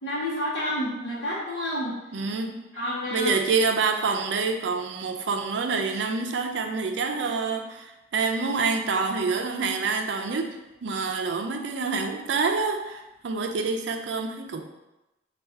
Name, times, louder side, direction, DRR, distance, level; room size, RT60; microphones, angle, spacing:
voice 1, 0.0-2.0 2.7-3.3, left 1 dB, 70° left, -8 dB, 0.8 m, -29 dB
voice 2, 2.1-2.8 3.1-14.6, right 4 dB, 80° right, 5 dB, 0.4 m, -27 dB
3.5 x 2.4 x 4.3 m, 0.98 s
head